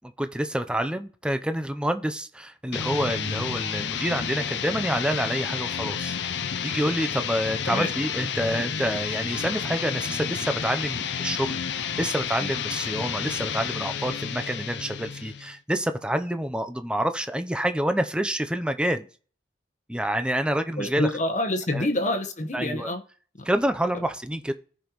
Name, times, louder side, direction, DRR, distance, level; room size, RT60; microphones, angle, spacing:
voice 1, 0.0-6.2 6.6-19.1 19.9-21.1 21.7-21.9 22.5-22.9 23.5-24.5, right 1 dB, 5° right, 9 dB, 0.6 m, -28 dB
sound 1, 2.7-15.6, left 7 dB, 70° left, 0.6 m, -31 dB
voice 2, 20.8-23.0 23.4-23.5, left 1 dB, 40° left, 7 dB, 1.2 m, -27 dB
15.5 x 5.3 x 3.0 m, 0.40 s
head